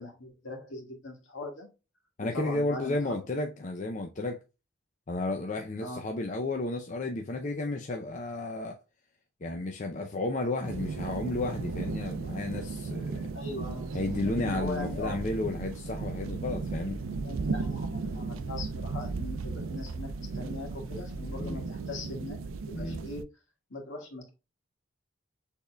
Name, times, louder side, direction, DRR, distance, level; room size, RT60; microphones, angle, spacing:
voice 1, 0.0-1.7 2.2-3.1 5.8-6.0 13.3-15.2 17.2-22.4 22.7-23.2 23.7-24.3, left 2 dB, 70° left, 1.8 m, -40 dB
voice 2, 2.2-4.4 5.1-8.8 9.4-13.3 13.9-17.0 21.3-21.7 22.7-23.0, left 2 dB, 40° left, 0.5 m, -33 dB
sound 1, 10.6-23.2, right 4 dB, 90° right, 0.4 m, -36 dB
sound 2, 13.8-21.6, equal, 20° right, 2.2 m, -43 dB
6.4 x 3.5 x 2.3 m
head